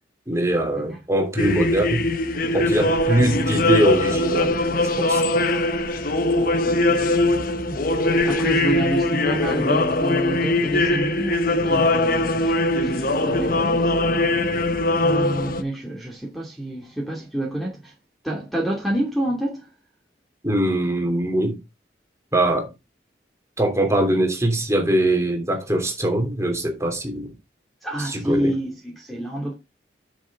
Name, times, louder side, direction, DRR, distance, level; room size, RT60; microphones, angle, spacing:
voice 1, 0.3-2.1 2.5-4.6 5.0-5.2 20.4-21.6 22.3-22.7 23.6-27.3 28.0-28.5, right 1 dB, 15° right, 3.2 m, -22 dB
sound 1, 1.4-15.6, left 2 dB, 50° left, 1.1 m, -21 dB
voice 2, 8.2-12.5 12.8-13.9 15.0-17.9 18.2-19.7 27.8-29.5, right 1 dB, ahead, 2.6 m, -28 dB
10.0 x 7.3 x 3.7 m
head